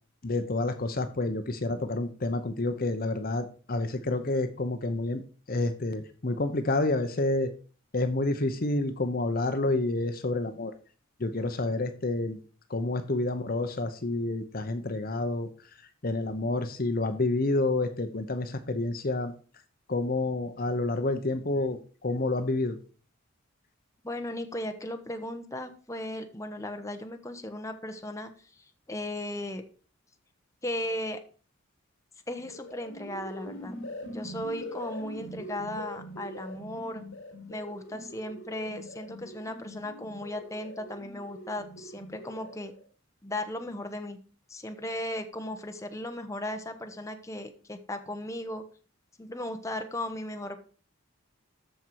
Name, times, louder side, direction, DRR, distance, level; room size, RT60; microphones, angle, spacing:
voice 1, 0.2-5.2 5.5-7.5 7.9-10.7 11.2-12.4 12.7-15.5 16.0-19.3 19.9-22.7, left 2 dB, 45° left, 9 dB, 0.8 m, -29 dB
voice 2, 24.0-28.3 28.6-29.6 30.6-31.2 32.3-33.7 34.1-37.0 37.5-42.7 43.2-44.2 44.5-48.6 49.2-50.6, left 1 dB, 15° left, 6 dB, 1.0 m, -36 dB
sound 1, 32.3-42.8, left 1 dB, 60° left, 4.3 m, -43 dB
14.0 x 5.5 x 4.6 m, 0.39 s
head